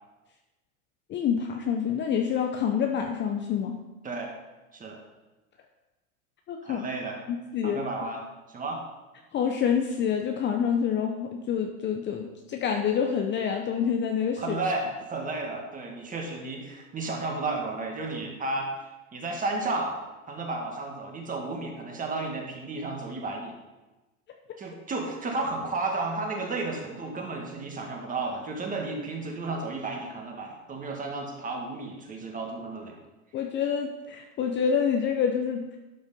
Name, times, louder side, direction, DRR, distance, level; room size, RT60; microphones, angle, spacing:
voice 1, 1.1-3.8 6.5-6.9 7.3-7.8 9.3-14.6 33.3-35.8, left 7 dB, 25° left, 3 dB, 0.7 m, -27 dB
voice 2, 6.6-7.2 7.6-8.2 8.5-8.8 14.4-18.7 19.1-20.0 20.3-23.6 24.6-33.0, right 3 dB, 20° right, 1 dB, 1.9 m, -33 dB
11.5 x 5.4 x 5.2 m, 1.1 s
supercardioid pair, 120°, 41 cm